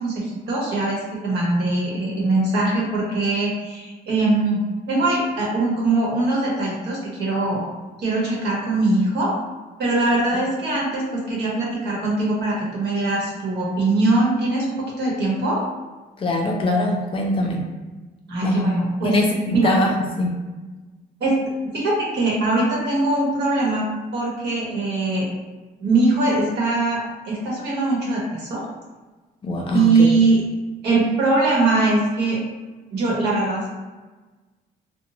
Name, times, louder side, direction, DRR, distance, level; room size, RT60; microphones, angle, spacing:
voice 1, 0.0-7.6 8.0-9.3 9.8-15.6 18.3-19.2 19.5-19.7 21.2-21.4 21.6-25.3 25.8-27.0 27.2-28.6 29.7-30.4 30.8-32.4 32.9-33.7, right 2 dB, 90° right, -4 dB, 1.0 m, -21 dB
voice 2, 16.2-17.7 18.4-18.7 19.0-20.4 29.4-29.9, left 1 dB, 30° left, 0 dB, 0.4 m, -22 dB
2.8 x 2.1 x 2.9 m, 1.2 s
cardioid pair, 175°, 17 cm